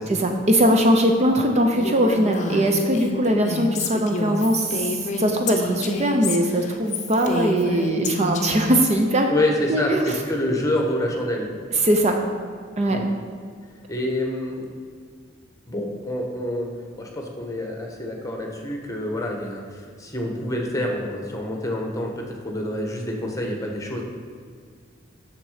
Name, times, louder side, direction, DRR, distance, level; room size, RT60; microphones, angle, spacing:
voice 1, 0.1-9.3 9.7-10.2 11.8-12.2 12.8-13.0, right 1 dB, 35° right, 3 dB, 0.6 m, -20 dB
Female speech woman speaking, 1.7-8.8, left 2 dB, 40° left, 0.7 m, -29 dB
voice 2, 9.3-11.5 12.9-13.0 13.9-14.8 15.7-16.7 17.0-24.0, left 1 dB, 15° left, 0 dB, 1.2 m, -27 dB
7.1 x 6.6 x 4.9 m, 2.1 s
head